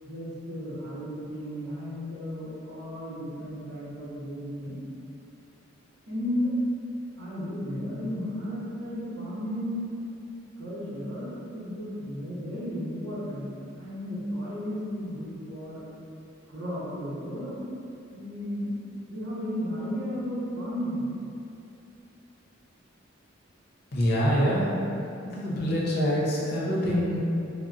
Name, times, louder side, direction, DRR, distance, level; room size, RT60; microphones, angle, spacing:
voice 1, 0.0-4.9 6.1-6.6 7.2-9.8 10.6-13.5 13.7-15.8 16.5-17.7 18.1-18.8 19.1-21.0, equal, 60° right, -9 dB, 0.9 m, -34 dB
voice 2, 23.9-24.7 25.2-27.2, equal, 55° left, -6 dB, 0.6 m, -25 dB
3.8 x 2.1 x 2.3 m, 2.6 s
head